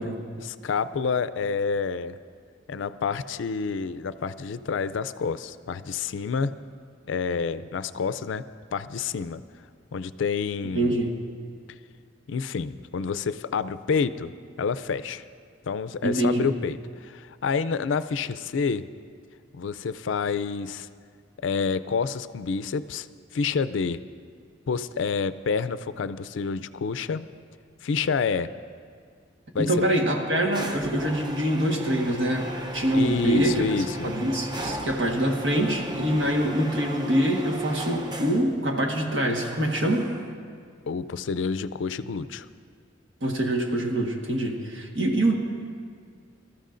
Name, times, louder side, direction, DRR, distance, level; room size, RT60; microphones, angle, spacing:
voice 1, 0.4-2.2 2.7-6.6 7.1-8.4 8.7-9.4 9.9-11.0 12.3-14.3 14.6-15.2 15.7-18.9 19.5-20.9 21.4-23.1 23.3-24.0 24.7-27.3 27.8-28.5 29.5-29.7 32.9-34.1 40.9-42.5, left 5 dB, 75° left, 14 dB, 0.4 m, -28 dB
voice 2, 10.7-11.1 16.0-16.5 29.6-33.7 34.0-40.1 43.2-45.4, right 1 dB, 70° right, 1 dB, 1.5 m, -25 dB
sound 1, 30.5-38.6 39.4-40.3, right 1 dB, 25° right, 0.8 m, -36 dB
25.0 x 13.5 x 2.6 m, 2.1 s
head